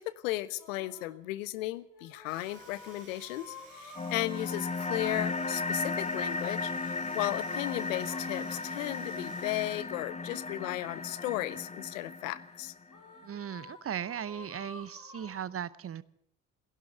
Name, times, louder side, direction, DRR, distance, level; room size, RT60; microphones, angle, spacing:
voice 1, 0.0-12.7, left 17 dB, 80° left, 18 dB, 0.7 m, -35 dB
sound 1, 0.6-1.2 1.9-6.1 7.4-9.0 10.1-11.8 12.9-15.4, left 4 dB, 50° left, 4.1 m, -51 dB
Domestic sounds home sounds, 2.1-10.0, right 6 dB, 90° right, 2.5 m, -56 dB
sound 2, 3.9-13.0, left 3 dB, 20° left, 1.1 m, -35 dB
voice 2, 13.2-16.0, right 9 dB, 35° right, 19 dB, 0.8 m, -37 dB
15.5 x 11.5 x 8.1 m, 0.70 s
hypercardioid pair, 50°, 38 cm